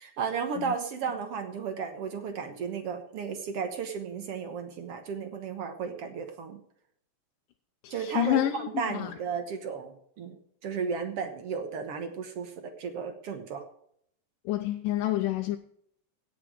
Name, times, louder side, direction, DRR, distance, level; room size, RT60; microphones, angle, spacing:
voice 1, 0.0-6.6 7.9-10.4 10.6-12.5 12.8-13.6, right 6 dB, 60° right, 1.7 m, -34 dB
voice 2, 8.2-8.5 14.5-15.6, left 14 dB, 80° left, 2.2 m, -26 dB
16.5 x 6.0 x 6.2 m
omnidirectional pair, 3.9 m